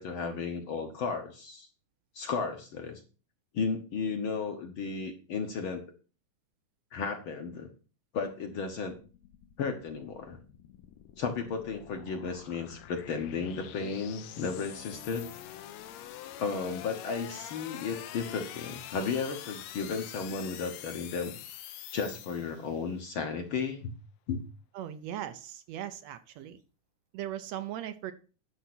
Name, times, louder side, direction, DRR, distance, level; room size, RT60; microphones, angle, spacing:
voice 1, 0.0-1.7 2.1-3.0 3.5-5.8 6.9-7.7 8.1-9.0 9.6-10.4 11.2-15.3 16.4-21.4 21.9-23.9 24.3-24.5, left 5 dB, 55° left, 4 dB, 1.6 m, -34 dB
sound 1, 8.3-22.9, left 12 dB, 75° left, 1.9 m, -46 dB
voice 2, 24.7-26.6 27.1-28.1, right 11 dB, 75° right, 10 dB, 1.8 m, -38 dB
11.0 x 5.6 x 6.0 m, 0.36 s
omnidirectional pair, 3.3 m